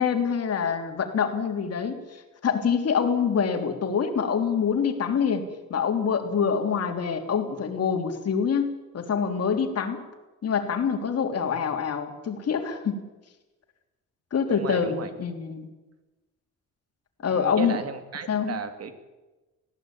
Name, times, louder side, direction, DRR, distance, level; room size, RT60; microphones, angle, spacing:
voice 1, 0.0-5.4 5.7-10.0 10.4-13.0 14.3-15.7 17.2-17.8 18.3-18.6, left 6 dB, 55° left, 5 dB, 3.3 m, -26 dB
voice 2, 14.5-15.1 17.2-18.9, right 6 dB, 55° right, 8 dB, 2.6 m, -34 dB
20.0 x 16.0 x 9.0 m, 1.1 s
cardioid pair, 90°, 30 cm